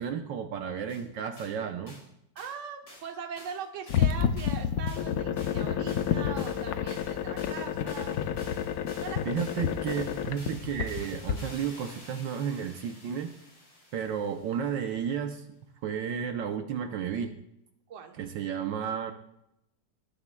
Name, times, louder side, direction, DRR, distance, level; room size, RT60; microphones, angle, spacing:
voice 1, 0.0-2.0 9.3-13.3 13.9-15.4 15.8-17.3 18.2-19.1, right 7 dB, 70° right, 6 dB, 1.4 m, -32 dB
sound 1, 0.9-1.0 1.4-1.5 1.9-2.1 2.4-2.6 2.9-3.1 3.4-14.9, left 1 dB, 85° left, 4.7 m, -51 dB
voice 2, 2.3-8.2 9.0-9.3 17.9-18.2, right 6 dB, 45° right, 4 dB, 1.2 m, -41 dB
sound 2, 3.9-11.3, left 8 dB, 70° left, 0.8 m, -30 dB
18.5 x 10.5 x 2.2 m, 0.81 s
omnidirectional pair, 2.1 m